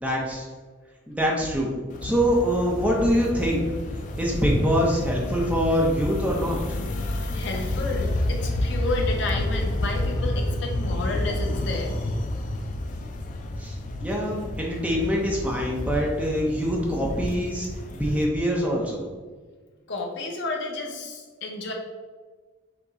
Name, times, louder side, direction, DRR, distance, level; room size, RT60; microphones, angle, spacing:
voice 1, 0.0-0.5 1.1-1.8 2.0-3.6 4.2-6.6 13.6-19.0, equal, 5° right, -3 dB, 0.7 m, -24 dB
sound 1, 1.9-18.2, left 1 dB, 40° left, 0.3 m, -30 dB
voice 2, 7.3-12.0 19.9-21.7, left 2 dB, 60° left, 1 dB, 0.7 m, -31 dB
5.9 x 2.2 x 3.9 m, 1.4 s
head